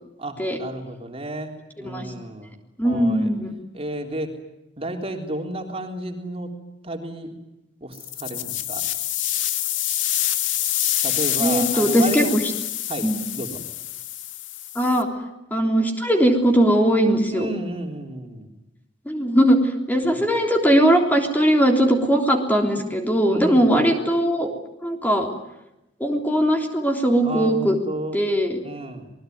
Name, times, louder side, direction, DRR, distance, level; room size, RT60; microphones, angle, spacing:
voice 1, 0.2-2.5 2.8-3.3 3.7-4.3 4.8-6.5 6.8-7.4 7.8-8.9 11.0-12.3 12.9-13.6 17.3-18.5 20.0-20.2 23.3-23.7 27.2-28.2 28.6-29.0, right 1 dB, 30° right, 3 dB, 3.8 m, -32 dB
voice 2, 2.8-3.5 11.4-12.4 13.0-13.2 14.8-15.1 15.5-17.5 19.1-19.6 19.9-24.5 24.8-25.3 26.0-27.8 28.1-28.6, equal, 10° left, 3 dB, 3.4 m, -19 dB
sound 1, 7.9-15.0, left 12 dB, 80° left, 2.2 m, -26 dB
28.0 x 21.5 x 9.5 m, 0.91 s
head